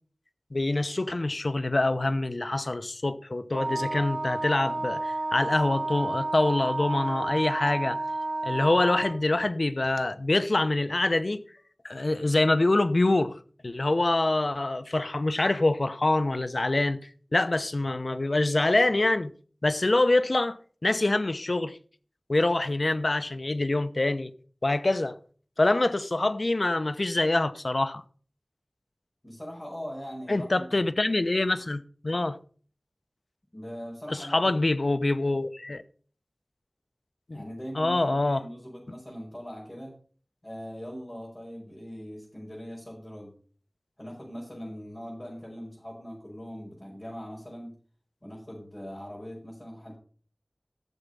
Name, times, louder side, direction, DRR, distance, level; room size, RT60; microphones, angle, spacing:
voice 1, 0.5-8.0 8.4-11.4 11.8-13.4 13.6-17.0 17.3-19.3 19.6-21.8 22.3-24.3 24.6-25.1 25.6-28.0 30.3-32.4 34.1-35.8 37.3-37.4 37.7-38.4, left 2 dB, 65° left, 0.9 m, -25 dB
Wind instrument woodwind instrument, 3.5-9.2, right 2 dB, 65° right, 1.9 m, -31 dB
voice 2, 29.2-30.8 33.5-34.6 37.3-39.9 40.4-43.3 44.0-47.8 48.2-49.9, equal, 25° left, 5.9 m, -41 dB
13.5 x 7.2 x 5.4 m
wide cardioid pair, 50°, 0 cm